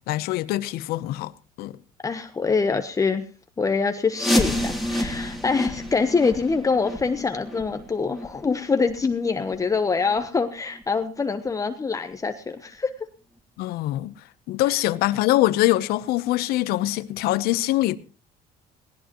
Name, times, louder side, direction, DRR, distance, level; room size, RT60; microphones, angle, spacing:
voice 1, 0.1-1.3 1.6-1.8 13.6-14.1 14.5-18.0, left 16 dB, 75° left, 0.9 m, -23 dB
voice 2, 2.0-3.2 3.6-12.9 14.7-14.8, left 4 dB, 20° left, 1.1 m, -25 dB
sound 1, 4.1-9.7 10.1-10.2 10.7-10.8 11.4-11.5 12.1-12.2, left 1 dB, ahead, 3.1 m, -29 dB
19.0 x 17.0 x 3.1 m
cardioid pair, 115°, 16 cm